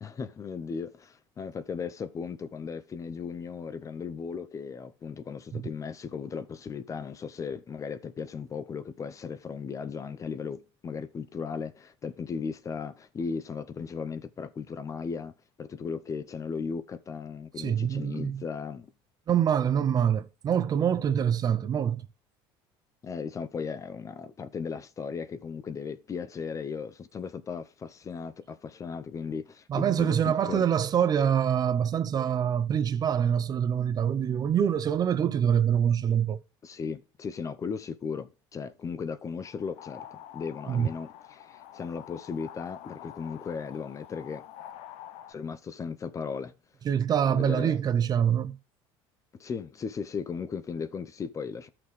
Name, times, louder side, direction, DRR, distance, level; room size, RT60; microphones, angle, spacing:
voice 1, 0.0-15.3 15.6-18.9 23.0-30.7 36.6-44.4 45.3-46.5 47.3-47.8 49.4-51.7, left 5 dB, 30° left, 0.6 m, -36 dB
voice 2, 17.6-18.4 19.3-22.1 29.7-36.4 40.7-40.9 46.8-48.6, right 8 dB, 35° right, 0.6 m, -25 dB
sound 1, 39.4-45.3, left 11 dB, 70° left, 0.7 m, -47 dB
13.0 x 5.9 x 3.2 m
supercardioid pair, 115°, 12 cm